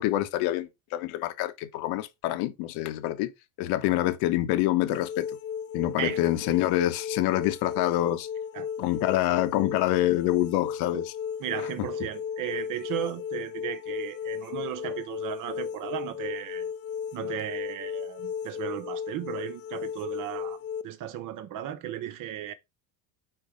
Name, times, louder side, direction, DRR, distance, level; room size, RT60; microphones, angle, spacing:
voice 1, 0.0-3.3 3.6-5.4 5.7-8.3 8.8-11.1, left 14 dB, 75° left, 1.1 m, -26 dB
sound 1, 4.9-20.8, left 7 dB, 35° left, 0.6 m, -35 dB
voice 2, 11.4-16.7 17.1-20.6 20.8-22.5, right 11 dB, 55° right, 1.1 m, -35 dB
4.6 x 4.6 x 5.1 m
cardioid pair, 130°, 39 cm